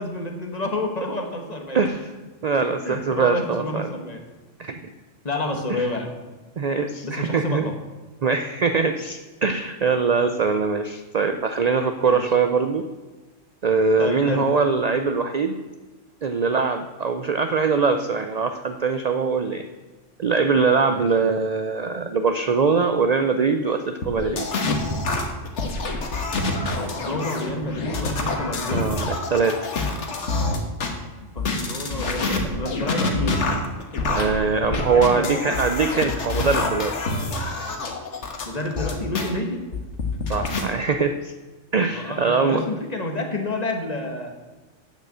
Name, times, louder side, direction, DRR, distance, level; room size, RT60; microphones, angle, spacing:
voice 1, 0.0-1.8 2.8-4.2 5.2-6.1 7.0-7.8 12.0-12.2 14.0-14.5 20.9-21.0 26.5-28.9 31.2-33.5 34.9-35.6 38.4-39.6 41.9-44.3, left 2 dB, 35° left, 3 dB, 1.3 m, -29 dB
voice 2, 1.7-2.1 2.4-3.9 4.6-4.9 5.7-5.9 6.6-7.7 8.2-12.8 13.6-15.5 16.2-19.6 20.2-24.5 28.7-29.7 34.1-36.9 40.3-41.3 41.7-42.6, right 5 dB, 50° right, 7 dB, 0.5 m, -22 dB
sound 1, 24.0-30.9 31.4-39.3 39.7-40.6, left 3 dB, 65° left, 1.6 m, -26 dB
8.2 x 6.6 x 7.5 m, 1.2 s
omnidirectional pair, 1.3 m